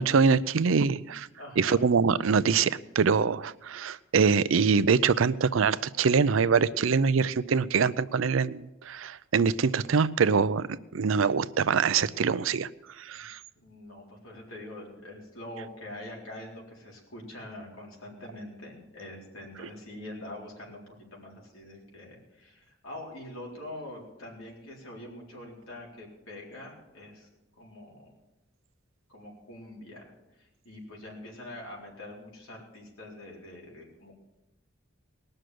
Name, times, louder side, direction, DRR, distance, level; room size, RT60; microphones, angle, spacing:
voice 1, 0.0-1.3 1.6-10.7 10.9-12.7 13.0-13.4, right 5 dB, 70° right, 16 dB, 0.5 m, -24 dB
voice 2, 1.4-1.9 13.1-13.3 13.6-27.3 27.6-28.1 29.1-34.1, left 1 dB, 85° left, -2 dB, 4.1 m, -44 dB
19.5 x 6.5 x 7.7 m, 0.99 s
head